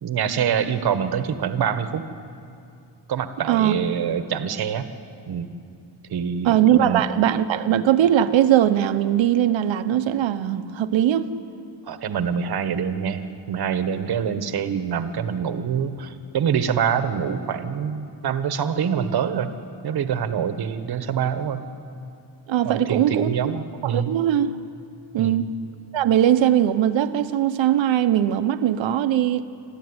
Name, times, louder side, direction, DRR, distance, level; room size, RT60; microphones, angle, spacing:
voice 1, 0.0-2.0 3.1-4.9 5.3-5.5 6.1-7.1 11.8-19.6 19.8-21.6 22.6-24.1 25.2-25.5, right 7 dB, 55° right, 1.3 m, -25 dB
voice 2, 6.4-11.3 22.5-23.5 23.8-24.5 25.1-25.5 25.9-29.5, right 11 dB, 80° right, 1.0 m, -20 dB
27.0 x 13.5 x 9.7 m
wide cardioid pair, 180°, 45 cm